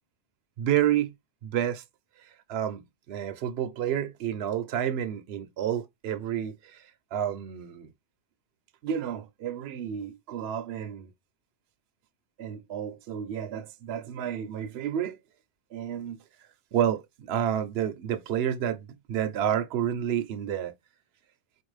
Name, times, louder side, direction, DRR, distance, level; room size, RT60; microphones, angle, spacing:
voice 1, 0.6-1.1 1.4-1.8 2.5-6.9 7.1-7.9 8.8-11.1 12.4-15.2 15.7-16.2 16.7-20.7, right 10 dB, 65° right, 0.8 m, -30 dB
4.2 x 2.5 x 3.1 m
omnidirectional pair, 1.2 m